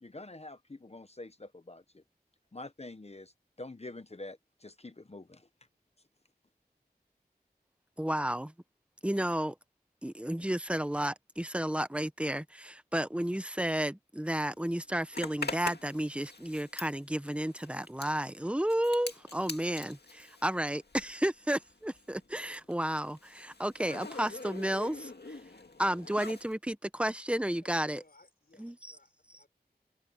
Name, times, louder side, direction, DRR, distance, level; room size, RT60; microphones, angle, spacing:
voice 1, 0.0-2.0 2.5-3.3 3.6-5.5, left 2 dB, 40° left, 0.8 m, -46 dB
voice 2, 8.0-8.5 9.0-9.5 10.0-25.1 25.8-28.0 28.6-28.9, right 1 dB, 5° right, 0.9 m, -32 dB
Zipper (clothing), 15.1-21.3 21.6-26.5, left 3 dB, 90° left, 1.9 m, -44 dB
voice 3, 27.6-29.5, left 2 dB, 65° left, 5.7 m, -63 dB
open air
wide cardioid pair, 45°, 17 cm